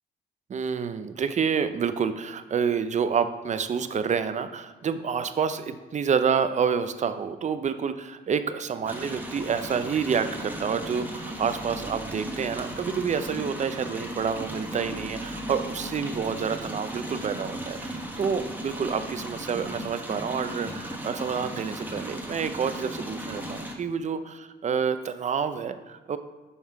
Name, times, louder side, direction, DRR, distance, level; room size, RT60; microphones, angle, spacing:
voice 1, 0.5-26.2, right 6 dB, 35° right, 11 dB, 0.5 m, -28 dB
sound 1, 8.9-23.8, equal, 10° right, 1.1 m, -36 dB
5.5 x 5.4 x 4.7 m, 1.3 s
cardioid pair, 90°, 20 cm